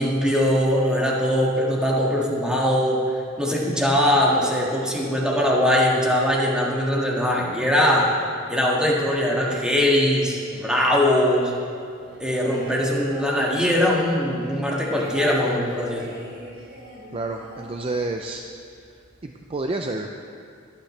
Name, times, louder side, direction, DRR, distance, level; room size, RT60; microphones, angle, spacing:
voice 1, 0.0-3.0 3.4-8.1 8.5-11.5 12.2-16.1, left 1 dB, 5° right, -3 dB, 1.8 m, -21 dB
sound 1, 12.0-14.1 14.4-18.4 18.7-18.8 19.0-19.5, right 1 dB, 55° right, 3.7 m, -38 dB
voice 2, 17.1-18.4 19.2-20.2, right 2 dB, 30° right, 3 dB, 0.5 m, -29 dB
23.0 x 9.1 x 3.3 m, 2.3 s
head